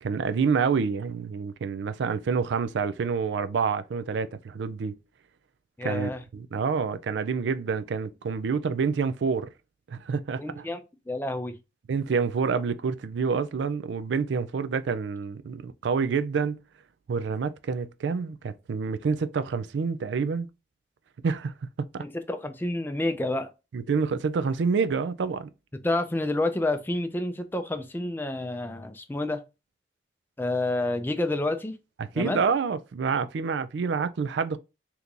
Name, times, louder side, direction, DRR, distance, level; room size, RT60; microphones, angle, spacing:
voice 1, 0.0-5.0 5.8-9.5 9.9-10.7 11.9-16.6 17.1-20.5 21.2-21.5 21.9-22.0 23.7-25.5 32.0-34.6, right 5 dB, 90° right, 0.4 m, -27 dB
voice 2, 5.8-6.2 10.4-11.6 22.0-23.5 25.8-29.4 30.4-31.8 32.1-32.4, left 2 dB, 10° left, 0.3 m, -29 dB
2.9 x 2.5 x 3.6 m
head